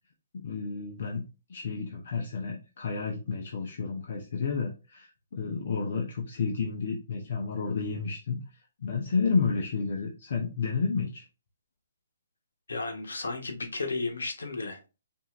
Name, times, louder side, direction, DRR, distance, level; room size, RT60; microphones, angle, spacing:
voice 1, 0.3-1.2 1.5-11.2, left 5 dB, 60° left, 1 dB, 0.9 m, -31 dB
voice 2, 12.7-14.9, left 3 dB, 85° left, 3 dB, 1.1 m, -33 dB
5.5 x 2.8 x 2.5 m, 0.30 s
hypercardioid pair, 150°, 0 cm